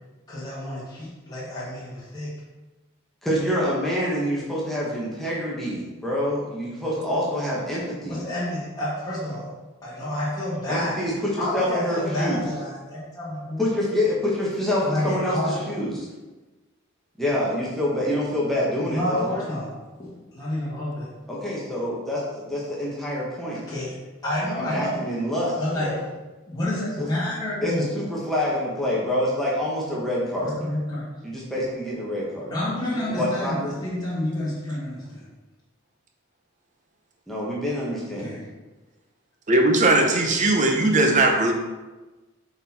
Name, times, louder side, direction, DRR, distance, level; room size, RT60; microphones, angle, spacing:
voice 1, 0.3-2.3 8.1-9.5 9.8-11.0 11.4-13.6 14.8-15.6 18.9-19.7 20.0-21.1 23.7-25.0 25.6-26.0 26.5-27.9 30.4-31.1 32.5-35.3 38.2-38.5, left 1 dB, 20° left, -9 dB, 1.7 m, -29 dB
voice 2, 3.2-8.2 10.7-12.4 13.6-16.1 17.2-19.3 21.3-23.6 24.6-26.0 27.0-27.1 27.6-30.6 31.2-32.7 33.0-33.8 37.3-38.4, left 1 dB, ahead, -6 dB, 1.2 m, -26 dB
voice 3, 39.5-41.5, right 2 dB, 35° right, 2 dB, 0.8 m, -19 dB
6.9 x 4.2 x 4.3 m, 1.2 s
head